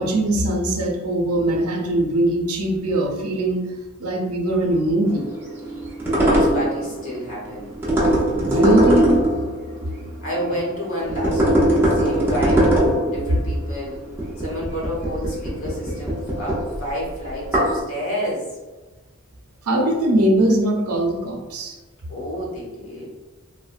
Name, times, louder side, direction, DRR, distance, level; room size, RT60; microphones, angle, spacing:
voice 1, 0.0-3.6 4.0-5.3 8.3-9.2 19.6-21.8, right 1 dB, 85° right, 2 dB, 0.6 m, -21 dB
sound 1, 5.0-10.6 11.0-17.8, right 1 dB, 10° right, 0.6 m, -21 dB
voice 2, 6.1-7.7 10.2-11.7 11.9-12.7 13.1-14.0 14.4-18.4 22.1-23.1, equal, 65° left, -4 dB, 1.1 m, -30 dB
3.2 x 2.1 x 2.4 m, 1.2 s
head